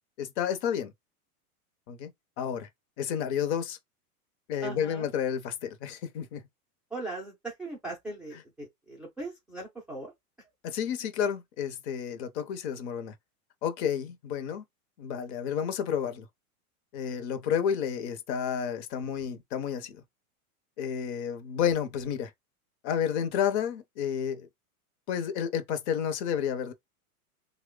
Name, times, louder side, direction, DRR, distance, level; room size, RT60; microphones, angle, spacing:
voice 1, 0.2-0.9 1.9-2.1 2.4-2.7 3.0-3.8 4.5-6.4 10.6-13.1 13.6-14.6 15.0-16.3 16.9-20.0 20.8-22.3 22.8-24.5 25.1-26.7, left 8 dB, 45° left, 0.8 m, -31 dB
voice 2, 4.6-5.1 6.9-10.1, right 2 dB, ahead, 0.4 m, -39 dB
3.0 x 2.2 x 3.6 m
hypercardioid pair, 130°, 45 cm